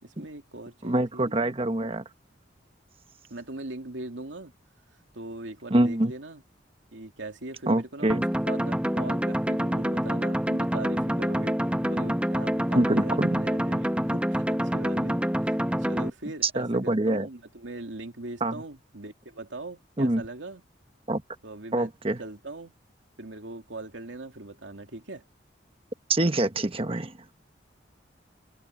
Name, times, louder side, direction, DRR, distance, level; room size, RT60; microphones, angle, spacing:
voice 1, 0.0-1.5 3.3-4.5 5.1-6.4 6.9-15.2 15.4-15.6 15.9-20.6 21.4-21.9 22.2-22.7 23.2-25.2, right 2 dB, 90° right, 2.6 m, -40 dB
voice 2, 0.8-2.0 5.7-6.1 7.7-8.3 12.7-13.4 16.4-17.3 18.4-18.6 20.0-20.2 21.1-21.2 21.7-22.2 26.1-27.3, right 1 dB, 30° right, 1.2 m, -25 dB
sound 1, 8.1-16.1, equal, 5° right, 1.1 m, -27 dB
open air
head